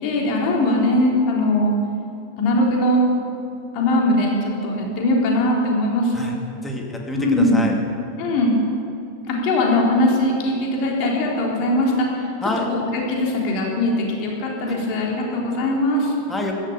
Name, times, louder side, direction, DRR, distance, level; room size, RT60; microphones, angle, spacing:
voice 1, 0.0-1.8 2.4-3.0 3.7-6.4 7.1-7.6 8.2-8.6 9.3-12.3 12.7-16.1, left 1 dB, 45° left, -2 dB, 3.6 m, -20 dB
voice 2, 6.6-7.7 12.4-12.7 16.3-16.5, left 1 dB, 10° left, 1 dB, 2.5 m, -27 dB
15.5 x 12.5 x 6.8 m, 2.6 s
figure-of-eight pair, 90°, 0 cm